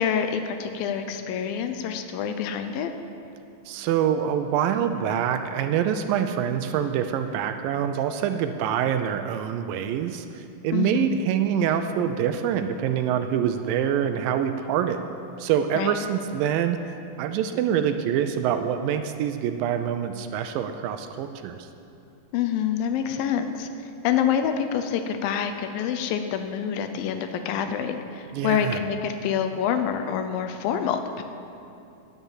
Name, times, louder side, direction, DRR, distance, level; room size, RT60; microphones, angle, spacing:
voice 1, 0.0-2.9 10.7-11.3 15.8-16.0 22.3-23.7 24.0-31.2, left 8 dB, 80° left, 7 dB, 2.4 m, -27 dB
voice 2, 3.7-15.0 15.4-16.9 17.2-21.7 28.3-28.8, right 9 dB, 80° right, 8 dB, 2.2 m, -25 dB
9.7 x 9.3 x 7.3 m, 2.6 s
omnidirectional pair, 4.2 m